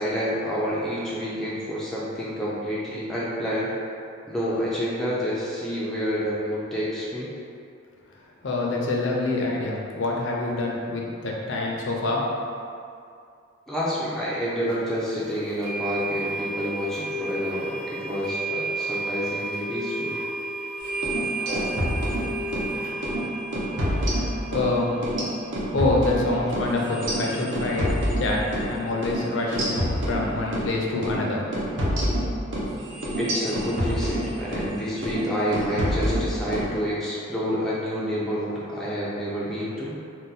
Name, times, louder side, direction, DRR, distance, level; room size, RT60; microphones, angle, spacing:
voice 1, 0.0-3.7 4.3-7.3 13.7-20.2 33.2-39.9, equal, ahead, -8 dB, 0.3 m, -28 dB
voice 2, 8.4-12.2 24.5-25.0 25.7-28.4 28.7-31.4, left 2 dB, 65° left, -2 dB, 0.5 m, -26 dB
sound 1, 14.7-14.8 15.6-27.2, right 2 dB, 40° right, 1.0 m, -33 dB
sound 2, 20.9-22.7 23.0-23.2 23.5-24.7 25.0-28.7 29.0-29.2 29.5-30.7 31.0-31.2 31.5-34.7 35.0-35.3 35.5-36.7, equal, 65° right, 0.6 m, -27 dB
2.6 x 2.1 x 3.9 m, 2.4 s
head